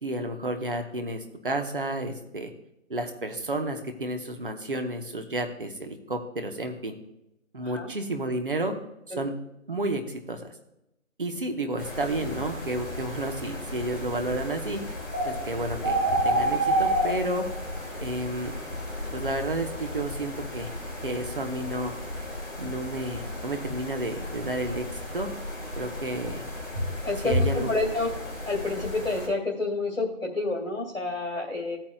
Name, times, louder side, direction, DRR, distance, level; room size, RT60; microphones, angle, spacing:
voice 1, 0.0-2.5 2.9-6.9 7.5-8.7 9.1-9.3 9.7-10.5 11.2-14.8 15.2-16.0 16.2-17.5 18.0-18.5 19.1-20.7 21.0-21.9 22.6-24.9 25.1-25.3 25.7-26.4 27.2-27.7, right 1 dB, 40° right, 5 dB, 1.1 m, -31 dB
voice 2, 7.6-7.9 9.1-9.2 27.0-28.1 28.5-31.8, left 3 dB, 70° left, -3 dB, 2.4 m, -29 dB
sound 1, 11.8-29.3, equal, ahead, 3.4 m, -31 dB
15.0 x 8.9 x 2.4 m, 0.86 s
figure-of-eight pair, 165°, 40 cm